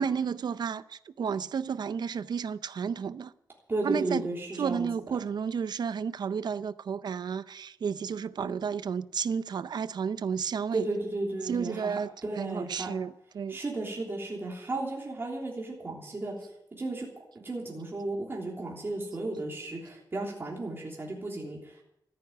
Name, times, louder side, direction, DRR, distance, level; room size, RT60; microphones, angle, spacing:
voice 1, 0.0-3.3 3.8-4.3 4.5-10.9 11.4-13.6, right 6 dB, 70° right, 0.6 m, -32 dB
voice 2, 3.7-4.9 10.7-12.9 13.5-16.3 16.7-17.1 17.4-21.8, right 2 dB, 30° right, 3.3 m, -34 dB
14.0 x 9.7 x 9.1 m
wide cardioid pair, 130°, 8 cm